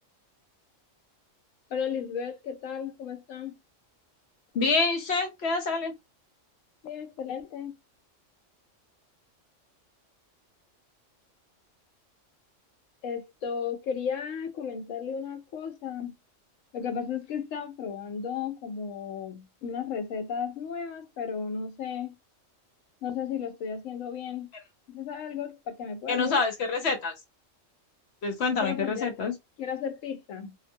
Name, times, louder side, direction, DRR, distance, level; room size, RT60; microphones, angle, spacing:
voice 1, 1.7-3.5 6.8-7.7 13.0-16.2 16.7-22.1 23.0-24.5 24.9-26.4 28.6-29.1 29.6-30.6, left 7 dB, 80° left, 1.1 m, -34 dB
voice 2, 4.5-5.9 24.5-24.6 26.1-27.1 28.2-29.3, left 4 dB, 65° left, 0.8 m, -27 dB
2.6 x 2.3 x 2.6 m
omnidirectional pair, 1.3 m